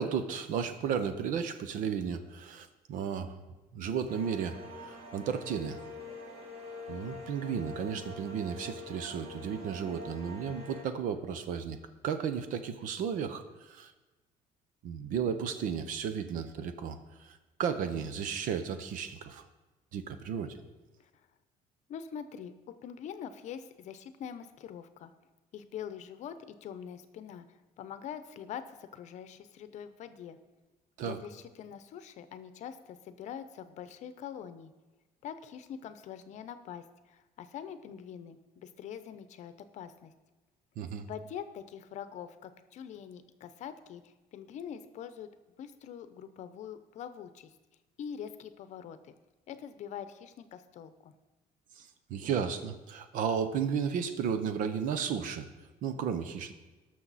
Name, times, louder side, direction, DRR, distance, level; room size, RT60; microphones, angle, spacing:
voice 1, 0.0-3.3 3.7-5.8 6.9-11.8 12.0-13.9 14.8-19.4 19.9-20.6 31.0-31.2 40.8-41.1 51.8-55.5 55.8-56.5, right 7 dB, 65° right, 10 dB, 0.9 m, -34 dB
sound 1, 4.1-10.8, left 2 dB, 45° right, 1.8 m, -45 dB
voice 2, 21.9-25.1 25.5-26.4 26.6-30.4 31.0-34.7 35.2-40.1 41.0-45.3 45.6-47.5 48.0-49.1 49.5-51.1, left 8 dB, 55° left, 11 dB, 0.7 m, -44 dB
19.0 x 6.4 x 4.1 m, 1.2 s
cardioid pair, 155°, 15 cm